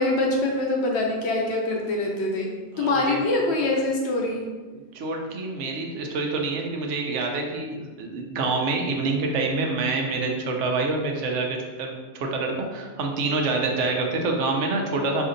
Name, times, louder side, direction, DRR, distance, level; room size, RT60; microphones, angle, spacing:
voice 1, 0.0-4.4, left 2 dB, 65° left, -1 dB, 1.0 m, -24 dB
voice 2, 2.7-3.2 4.7-15.2, right 3 dB, 85° right, 2 dB, 1.0 m, -27 dB
4.3 x 2.7 x 3.8 m, 1.3 s
omnidirectional pair, 1.2 m